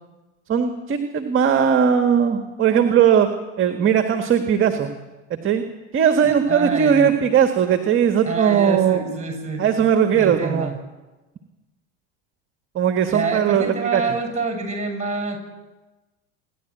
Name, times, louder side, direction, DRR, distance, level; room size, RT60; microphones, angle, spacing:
voice 1, 0.5-3.3 3.6-4.9 5.3-5.6 5.9-9.0 9.6-10.7 12.8-14.0, right 8 dB, 35° right, 6 dB, 1.7 m, -18 dB
voice 2, 6.2-7.1 8.2-9.7 10.1-10.8 13.1-15.4, right 4 dB, 20° right, 3 dB, 7.6 m, -27 dB
27.0 x 11.5 x 9.1 m, 1.2 s
hypercardioid pair, 90°, 36 cm